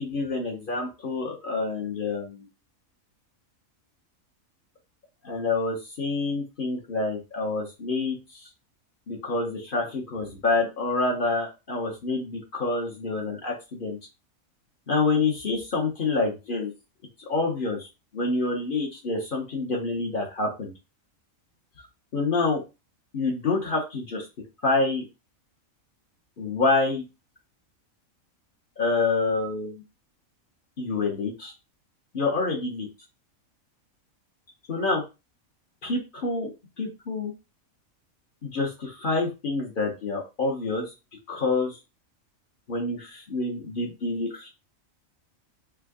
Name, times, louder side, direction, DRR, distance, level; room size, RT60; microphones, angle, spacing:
voice 1, 0.0-2.5 5.2-8.2 9.1-14.0 14.9-16.7 17.3-17.9 18.1-20.7 22.1-22.6 23.1-24.3 24.6-25.0 26.4-27.0 28.8-29.8 30.8-31.5 32.1-32.9 34.7-35.0 35.8-36.5 36.8-37.3 38.4-40.9 41.3-41.8 42.7-44.5, left 3 dB, 45° left, 0 dB, 0.8 m, -27 dB
3.4 x 2.1 x 3.5 m, 0.27 s
omnidirectional pair, 1.5 m